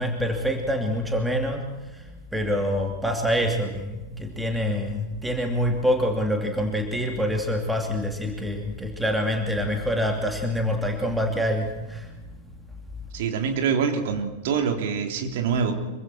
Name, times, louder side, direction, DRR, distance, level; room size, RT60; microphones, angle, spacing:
voice 1, 0.0-12.1, equal, 5° right, 2 dB, 2.8 m, -26 dB
voice 2, 13.1-15.7, right 6 dB, 55° right, 3 dB, 3.5 m, -25 dB
26.5 x 24.5 x 4.5 m, 1.1 s
figure-of-eight pair, 90°, 0 cm